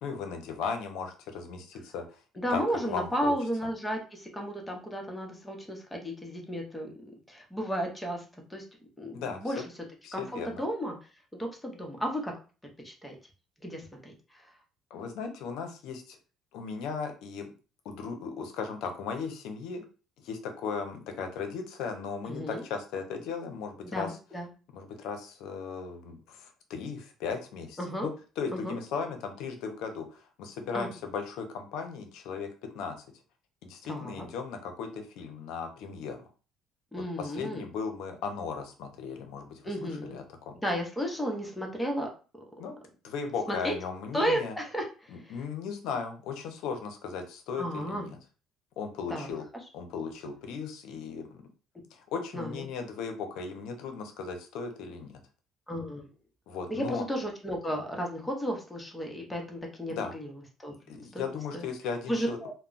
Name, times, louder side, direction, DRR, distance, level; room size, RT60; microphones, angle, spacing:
voice 1, 0.0-2.0 2.5-2.6 2.9-3.3 9.1-9.4 10.0-10.6 14.9-16.2 16.5-17.4 17.8-19.8 20.2-24.1 24.7-32.5 32.7-33.0 33.6-36.2 37.2-40.6 42.6-42.8 43.0-44.5 45.1-48.2 48.8-49.4 49.7-51.4 51.9-55.1 56.5-57.0 59.9-60.1 60.9-62.4, left 5 dB, 75° left, 5 dB, 0.6 m, -37 dB
voice 2, 2.4-6.9 7.3-8.2 8.5-8.6 9.0-9.6 10.1-10.9 11.4-12.3 12.8-13.2 13.6-14.5 22.3-22.6 23.8-24.5 27.8-28.1 28.5-28.8 30.7-30.9 33.8-34.3 36.9-37.6 39.6-40.2 40.6-42.1 43.5-43.7 44.1-45.3 47.6-48.1 49.1-49.3 52.3-52.7 55.7-56.1 56.7-60.3 60.6-60.7 61.1-61.2 61.5-61.7 62.1-62.5, equal, 5° left, 1 dB, 0.8 m, -33 dB
2.2 x 2.0 x 3.8 m, 0.35 s
cardioid pair, 115°, 0 cm